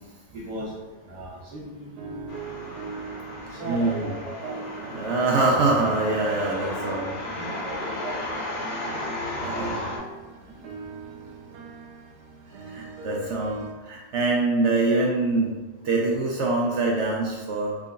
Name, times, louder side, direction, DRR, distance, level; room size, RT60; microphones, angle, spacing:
voice 1, 0.3-0.7 1.1-2.3 3.6-5.3 7.3-8.9 9.4-9.7 10.5-10.6, right 2 dB, 50° right, -8 dB, 1.5 m, -37 dB
sound 1, 2.0-5.0 5.3-13.7, right 4 dB, 90° right, 1.1 m, -41 dB
sound 2, 2.3-10.0, left 1 dB, 70° left, 1.2 m, -34 dB
voice 2, 3.7-4.1 4.9-7.2 9.4-9.8 12.6-15.5 15.8-17.8, right 3 dB, 65° right, -2 dB, 0.7 m, -24 dB
3.8 x 2.2 x 3.7 m, 1.2 s
omnidirectional pair, 1.7 m